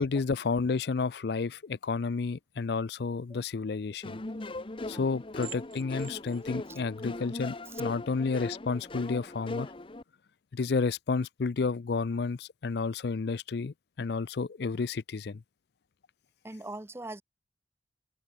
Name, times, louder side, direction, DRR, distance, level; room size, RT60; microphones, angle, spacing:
voice 1, 0.0-4.2 4.9-9.7 10.5-15.4, left 4 dB, 60° left, 0.5 m, -31 dB
sound 1, 4.0-10.0, left 2 dB, 30° left, 0.9 m, -39 dB
sound 2, 4.1-8.4, right 11 dB, 50° right, 5.8 m, -54 dB
voice 2, 16.4-17.2, right 2 dB, 15° right, 0.7 m, -42 dB
head